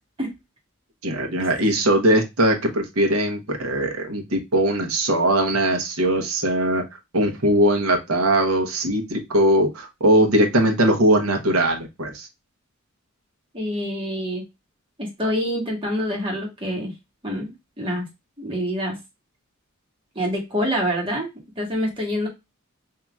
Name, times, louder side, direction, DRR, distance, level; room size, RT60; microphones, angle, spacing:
voice 1, 1.0-6.8 7.1-12.3, right 1 dB, 90° right, 3 dB, 1.0 m, -20 dB
voice 2, 13.5-14.4 15.0-16.9 17.2-18.0 18.4-19.0 20.1-21.3 21.6-22.3, equal, 25° right, -1 dB, 1.6 m, -26 dB
5.6 x 2.8 x 2.3 m, 0.22 s
head